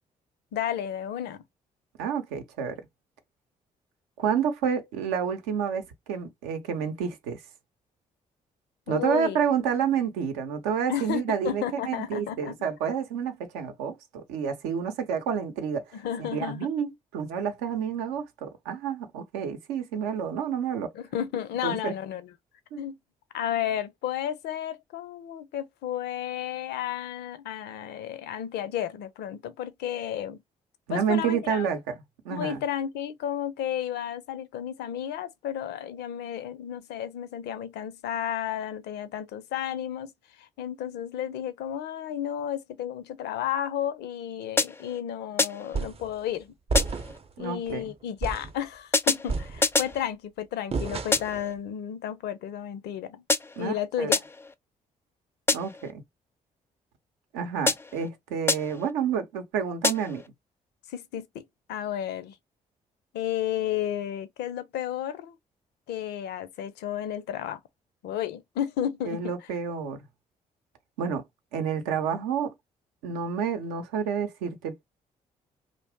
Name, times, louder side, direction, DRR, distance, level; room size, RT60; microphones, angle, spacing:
voice 1, 0.5-1.4 8.9-9.4 10.9-12.5 15.9-16.7 20.9-22.3 22.8-22.9 23.3-30.4 30.9-31.7 32.3-40.1 40.4-46.5 47.4-53.2 53.6-54.2 60.9-61.4 61.7-62.4 63.1-65.4 65.9-67.6 68.0-69.3, left 10 dB, 65° left, 0.5 m, -32 dB
voice 2, 2.0-2.8 4.2-7.4 8.9-20.9 21.6-21.9 22.7-22.8 30.9-31.8 32.2-32.6 47.4-47.8 53.6-54.1 55.5-56.0 57.3-60.2 69.1-70.1 71.0-71.2 71.5-72.5 73.0-74.8, right 7 dB, 75° right, 0.7 m, -29 dB
sound 1, 44.6-45.0 45.4-45.8 46.7-47.2 48.9-50.0 51.1-51.5 53.3-53.7 54.1-54.5 55.5-55.9 57.7-58.1 58.5-58.9 59.8-60.3, left 3 dB, 15° left, 0.4 m, -27 dB
sound 2, 45.7-46.1 46.7-47.3 47.7-47.8 48.2-48.6 49.3-50.0 50.7-51.4, right 4 dB, 35° right, 0.6 m, -31 dB
2.5 x 2.0 x 3.5 m
hypercardioid pair, 45°, 19 cm